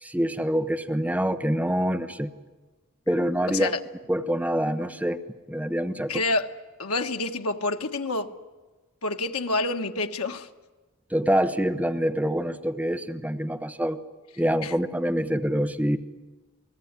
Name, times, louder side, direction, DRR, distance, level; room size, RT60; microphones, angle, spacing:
voice 1, 0.0-2.3 3.1-3.7 4.1-6.2 11.1-14.0 14.4-16.0, equal, 5° right, 7 dB, 0.9 m, -26 dB
voice 2, 3.5-3.8 6.1-6.5 6.8-8.3 9.0-10.5 14.6-14.7, left 2 dB, 90° left, 6 dB, 1.4 m, -28 dB
29.0 x 18.5 x 9.7 m, 1.3 s
head